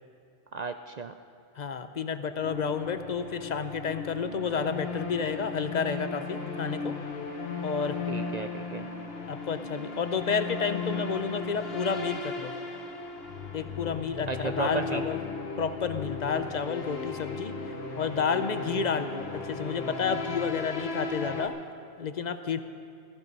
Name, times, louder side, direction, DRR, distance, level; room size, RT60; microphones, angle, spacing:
voice 1, 0.5-1.1 8.1-8.9 14.3-15.0, right 5 dB, 55° right, 7 dB, 0.4 m, -34 dB
voice 2, 1.6-7.0 7.6-8.0 9.3-12.5 13.5-15.2 15.6-17.5 18.0-21.6 22.0-22.6, left 5 dB, 45° left, 10 dB, 0.7 m, -30 dB
sound 1, 2.4-21.5, left 4 dB, 60° left, 1.4 m, -36 dB
15.0 x 14.5 x 5.3 m, 2.4 s
omnidirectional pair, 1.2 m